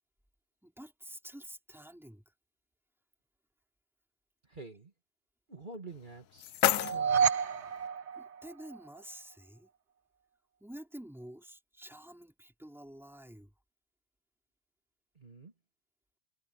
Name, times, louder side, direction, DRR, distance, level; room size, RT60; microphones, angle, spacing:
voice 1, 0.6-2.3 8.1-9.7 10.6-13.5, right 1 dB, ahead, 3.3 m, -49 dB
voice 2, 4.5-4.9 5.5-7.3 15.2-15.5, right 3 dB, 35° right, 2.2 m, -48 dB
sound 1, 5.9-7.9, left 13 dB, 85° left, 1.1 m, -33 dB
sound 2, 6.7-9.0, right 7 dB, 60° right, 1.1 m, -30 dB
omnidirectional pair, 1.4 m